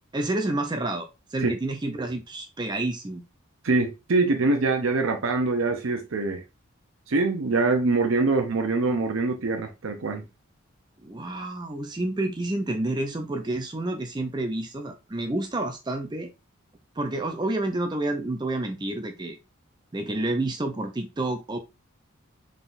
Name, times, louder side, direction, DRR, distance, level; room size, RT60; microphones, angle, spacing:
voice 1, 0.1-3.2 11.0-16.3 17.0-19.4 19.9-21.6, right 2 dB, 20° right, 0.4 m, -29 dB
voice 2, 3.6-6.4 7.1-10.2, right 3 dB, 75° right, 0.6 m, -24 dB
3.9 x 3.7 x 2.5 m
head